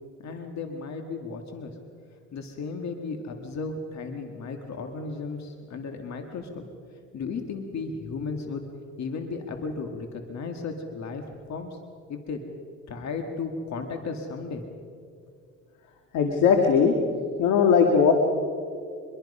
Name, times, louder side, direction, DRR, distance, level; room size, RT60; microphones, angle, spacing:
voice 1, 0.2-1.8 2.3-6.6 7.1-8.6 9.0-11.2 11.5-11.8 12.1-12.4 12.9-14.6, left 4 dB, 65° left, 4 dB, 2.0 m, -34 dB
voice 2, 16.1-16.9 17.4-18.1, left 6 dB, 85° left, 3 dB, 1.9 m, -19 dB
24.5 x 22.5 x 5.5 m, 2.3 s
cardioid pair, 90°, 30 cm